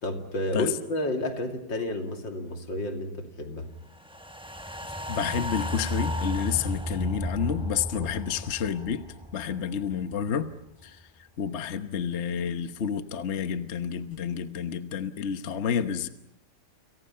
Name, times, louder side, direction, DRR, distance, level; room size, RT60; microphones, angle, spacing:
voice 1, 0.0-3.7 8.0-8.1, left 1 dB, 70° left, 4 dB, 3.5 m, -31 dB
sound 1, 4.1-10.5 10.8-10.9, left 1 dB, 5° right, 0.6 m, -34 dB
voice 2, 5.1-9.1 9.3-10.5 10.8-11.0 11.4-16.1, left 7 dB, 40° left, 9 dB, 1.2 m, -30 dB
30.0 x 27.5 x 5.7 m, 0.83 s
omnidirectional pair, 2.1 m